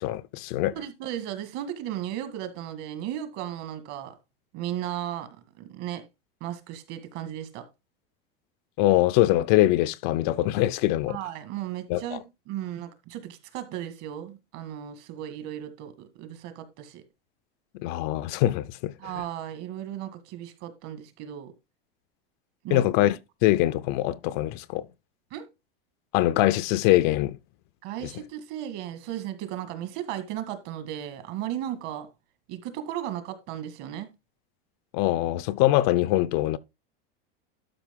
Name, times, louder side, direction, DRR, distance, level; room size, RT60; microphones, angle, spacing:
voice 1, 0.0-0.7 8.8-11.2 11.9-12.2 17.8-18.9 22.7-24.9 26.1-27.4 34.9-36.6, left 15 dB, 50° left, 0.6 m, -23 dB
voice 2, 0.7-4.1 4.5-5.3 5.6-6.0 6.4-7.7 11.1-17.0 19.0-21.5 22.6-22.8 25.3-25.5 27.8-32.1 32.5-34.1, right 11 dB, 50° right, 1.9 m, -35 dB
12.0 x 5.2 x 3.6 m
supercardioid pair, 135°, 30 cm